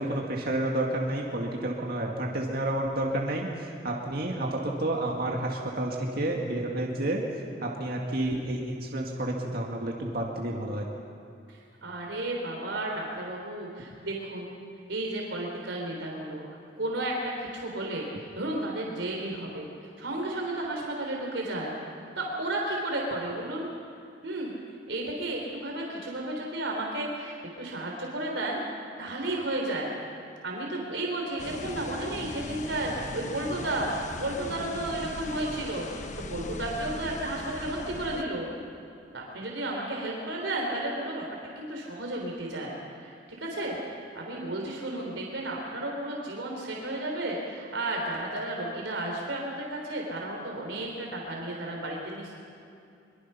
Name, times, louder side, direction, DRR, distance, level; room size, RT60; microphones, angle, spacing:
voice 1, 0.0-7.2 7.6-10.9, right 1 dB, 55° right, -1 dB, 2.1 m, -30 dB
voice 2, 11.5-14.5 14.9-16.4 16.8-18.1 18.4-19.7 20.0-21.8 22.2-23.7 24.2-24.5 24.9-28.6 29.0-29.9 30.4-33.9 34.2-35.9 36.3-38.5 39.1-41.2 41.6-42.7 43.0-52.3, right 1 dB, 85° right, -1 dB, 3.7 m, -33 dB
sound 1, 31.4-38.2, left 2 dB, 40° left, 1.1 m, -39 dB
23.5 x 23.0 x 5.7 m, 2.5 s
head